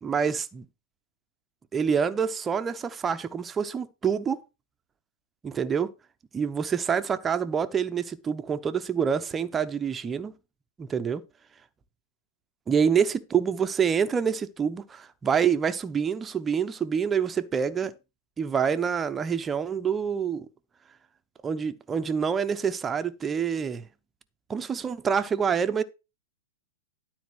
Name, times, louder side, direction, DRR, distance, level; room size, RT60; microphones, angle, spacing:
voice 1, 0.0-0.7 1.7-4.4 5.4-5.9 6.3-10.3 10.8-11.2 12.7-17.9 18.4-20.5 21.4-23.9 24.5-25.8, right 7 dB, 20° right, 0.8 m, -26 dB
12.0 x 4.2 x 6.2 m
hypercardioid pair, 110°, 0 cm